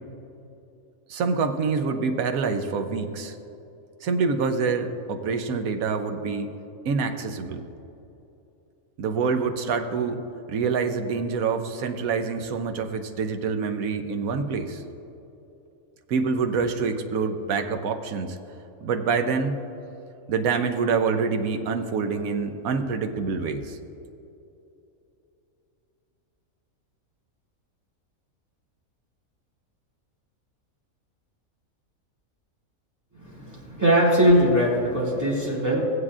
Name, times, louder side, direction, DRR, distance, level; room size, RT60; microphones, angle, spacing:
voice 1, 1.1-3.4 4.0-6.5 6.8-7.7 9.0-10.2 10.5-14.8 16.1-18.4 18.8-19.6 20.3-23.8, right 5 dB, 75° right, 6 dB, 1.1 m, -26 dB
voice 2, 33.2-35.8, equal, 10° right, -7 dB, 2.2 m, -21 dB
15.5 x 9.6 x 2.4 m, 2.9 s
omnidirectional pair, 1.5 m